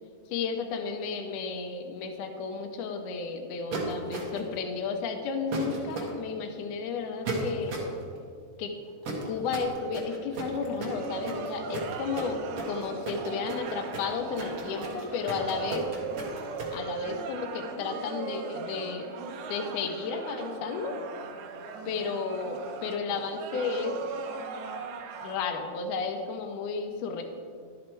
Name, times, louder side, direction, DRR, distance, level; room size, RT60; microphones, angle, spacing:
voice 1, 0.3-7.8 8.6-8.7 9.2-15.9 16.7-19.2 19.5-21.0 21.8-24.0 25.2-27.2, left 5 dB, 85° left, 4 dB, 1.8 m, -33 dB
sound 1, 3.7-4.5 5.5-6.1 7.3-7.9 9.0-16.7, right 3 dB, 60° right, 1.4 m, -35 dB
sound 2, 10.9-25.4, right 5 dB, 80° right, 2.6 m, -39 dB
11.5 x 6.5 x 4.5 m, 2.1 s
omnidirectional pair, 4.6 m